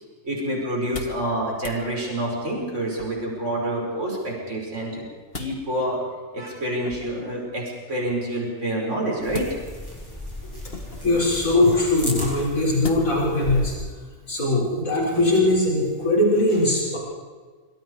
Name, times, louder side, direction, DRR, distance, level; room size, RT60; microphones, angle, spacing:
voice 1, 0.2-5.1 5.3-6.0 6.3-9.5, right 1 dB, 55° right, -2 dB, 6.3 m, -27 dB
sound 1, 0.7-1.3 1.6-1.8 2.9-3.4 4.9-5.6 6.8-7.3 9.3-9.9 10.7-11.2 12.8-13.3 13.8-13.9, left 4 dB, 45° left, 1.8 m, -37 dB
sound 2, 9.2-13.8, equal, 15° left, 7.4 m, -35 dB
voice 2, 11.0-13.7 14.3-17.0, left 2 dB, 75° left, -4 dB, 6.8 m, -21 dB
25.5 x 25.5 x 5.0 m, 1.5 s
omnidirectional pair, 1.4 m